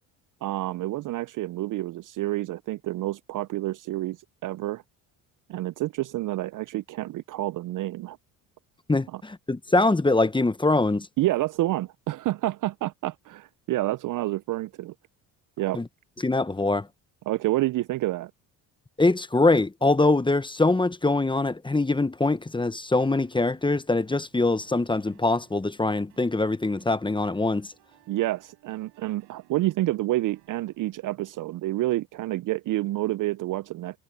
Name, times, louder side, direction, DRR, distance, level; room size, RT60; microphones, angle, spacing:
voice 1, 0.4-4.2 4.4-4.8 5.5-8.2 9.1-9.2 11.2-14.9 15.6-15.8 17.3-18.3 28.1-34.0, right 16 dB, 50° right, 0.4 m, -28 dB
voice 2, 8.9-11.1 15.7-15.9 16.2-16.9 19.0-27.7, left 2 dB, 10° left, 1.0 m, -23 dB
sound 1, 23.0-31.3, right 23 dB, 85° right, 7.5 m, -61 dB
supercardioid pair, 70°, 41 cm